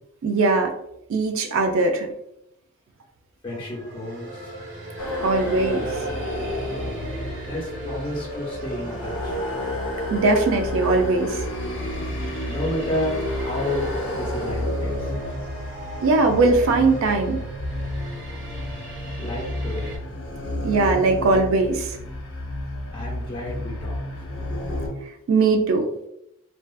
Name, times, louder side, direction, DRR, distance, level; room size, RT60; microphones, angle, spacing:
voice 1, 0.2-0.7 1.1-2.1 5.2-5.9 10.1-11.4 16.0-17.4 20.6-22.0 25.3-25.9, right 3 dB, 65° right, 5 dB, 0.3 m, -20 dB
voice 2, 3.4-4.5 7.5-9.4 12.5-15.1 19.2-19.9 22.9-24.0, left 1 dB, 20° left, -3 dB, 0.7 m, -31 dB
sound 1, 3.5-20.0, right 1 dB, 35° right, 0.7 m, -39 dB
sound 2, 5.0-24.9, left 1 dB, 60° left, 0.6 m, -30 dB
2.4 x 2.4 x 2.2 m, 0.79 s
head